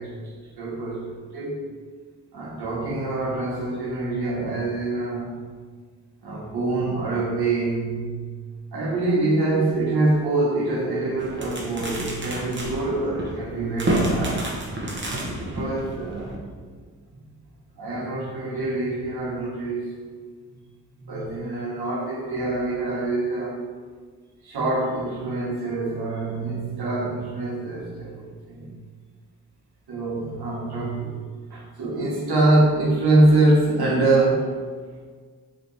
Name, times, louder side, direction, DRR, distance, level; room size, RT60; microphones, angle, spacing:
voice 1, 0.0-1.6 2.3-5.4 6.2-8.3 8.7-14.5 15.4-16.5 17.8-20.0 20.5-20.6 20.9-23.6 24.4-28.7 29.9-31.2 31.5-34.5, right 2 dB, 80° right, -5 dB, 1.3 m, -25 dB
sound 1, 11.2-16.4, right 1 dB, 30° right, 1.0 m, -29 dB
3.6 x 2.9 x 3.9 m, 1.6 s
cardioid pair, 65°, 38 cm